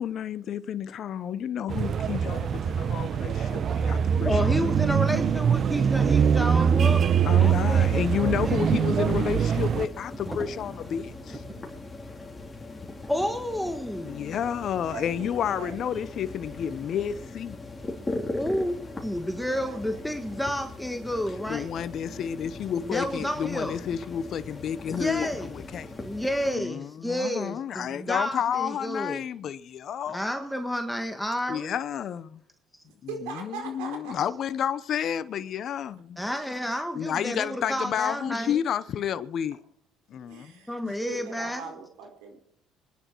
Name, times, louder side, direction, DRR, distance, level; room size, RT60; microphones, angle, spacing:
voice 1, 0.0-4.6 7.2-11.4 14.0-17.6 21.5-26.0 26.5-30.2 31.5-32.4 33.2-36.2 36.9-39.6 40.1-40.5 40.8-41.0, left 8 dB, 60° left, 0.8 m, -31 dB
sound 1, 1.7-9.9, right 7 dB, 50° right, 0.9 m, -23 dB
voice 2, 4.2-7.1 7.4-9.2 13.1-14.3 18.3-21.7 22.9-23.8 24.9-25.5 26.0-29.2 30.1-31.7 36.2-38.6 40.7-41.6, equal, 5° left, 1.6 m, -31 dB
sound 2, 7.4-26.6, left 2 dB, 20° left, 3.3 m, -40 dB
sound 3, 7.4-11.7, right 1 dB, 15° right, 6.8 m, -45 dB
voice 3, 14.9-15.9 19.4-20.4 32.8-34.2 40.3-42.4, right 6 dB, 85° right, 4.3 m, -40 dB
24.5 x 10.5 x 4.6 m
supercardioid pair, 70°, 0 cm